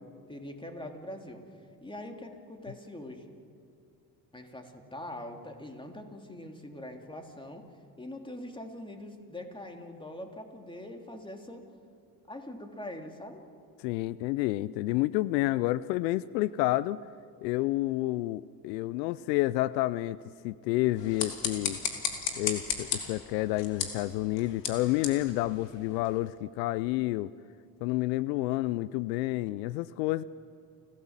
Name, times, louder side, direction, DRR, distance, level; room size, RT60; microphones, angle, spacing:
voice 1, 0.3-1.4 1.8-3.3 4.3-7.7 8.0-11.7 12.3-13.4, left 1 dB, 10° left, 3 dB, 3.1 m, -43 dB
voice 2, 13.8-17.0 17.4-20.2 20.4-21.8 22.4-27.3 27.8-30.2, left 17 dB, 85° left, 19 dB, 0.6 m, -29 dB
sound 1, 20.9-26.2, left 7 dB, 60° left, 3.1 m, -36 dB
29.0 x 15.0 x 7.4 m, 2.3 s
hypercardioid pair, 65°, 49 cm